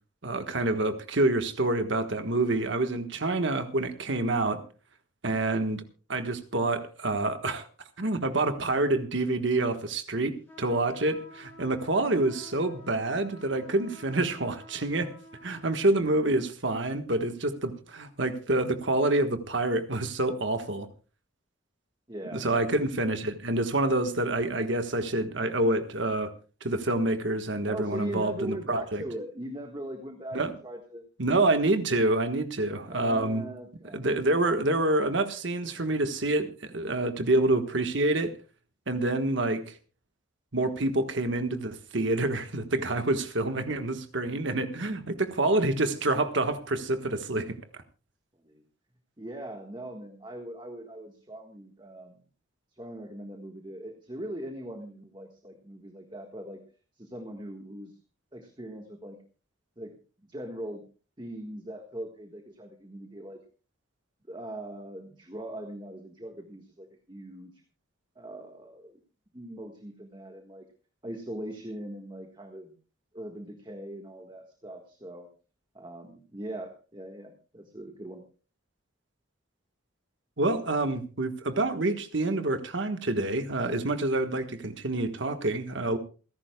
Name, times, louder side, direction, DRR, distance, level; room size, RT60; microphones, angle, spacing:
voice 1, 0.2-4.6 5.2-5.8 6.1-7.7 8.0-15.1 15.4-20.9 22.3-26.3 26.6-29.0 30.3-30.5 31.2-33.4 33.9-38.3 38.9-39.8 40.5-47.6 80.4-86.0, right 2 dB, 65° right, 8 dB, 1.5 m, -27 dB
sound 1, 10.5-15.9, left 1 dB, 10° left, 7.2 m, -50 dB
voice 2, 22.1-22.5 27.7-31.0 32.8-34.1 48.4-48.6 49.2-52.2 52.8-56.6 57.0-58.0 58.3-59.2 59.8-60.8 61.2-63.4 64.3-67.5 68.1-69.0 69.3-70.6 71.0-72.7 73.1-75.3 75.7-78.2, right 1 dB, 20° right, 3 dB, 1.6 m, -40 dB
28.0 x 11.0 x 2.3 m, 0.36 s
head